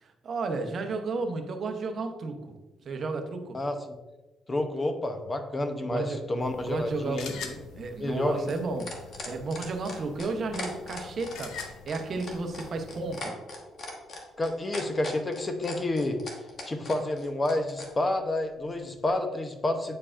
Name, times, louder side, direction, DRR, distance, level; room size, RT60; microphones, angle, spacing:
voice 1, 0.0-2.5 2.8-3.6 5.9-6.2 6.6-7.4 7.8-9.0 9.3-13.4, right 3 dB, 45° right, 5 dB, 0.8 m, -33 dB
voice 2, 3.5-4.0 4.5-7.6 8.0-8.5 14.4-16.2 16.7-20.0, left 1 dB, 20° left, 7 dB, 0.7 m, -29 dB
sound 1, 6.4-13.2, left 6 dB, 85° left, 0.7 m, -45 dB
sound 2, 7.4-17.9 19.1-19.2, left 2 dB, 45° left, 1.3 m, -40 dB
8.5 x 4.6 x 2.5 m, 1.1 s
cardioid pair, 125°, 0 cm